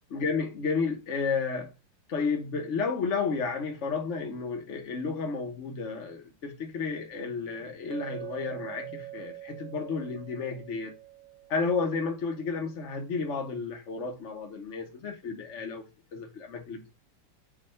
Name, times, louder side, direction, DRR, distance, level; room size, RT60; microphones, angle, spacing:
voice 1, 0.1-1.7 2.1-10.9 11.5-15.8 16.1-17.0, left 4 dB, 45° left, 1.3 m, -32 dB
Chink clink, 7.9-12.1, right 15 dB, 80° right, 2.1 m, -44 dB
7.6 x 2.6 x 5.6 m
omnidirectional pair, 2.1 m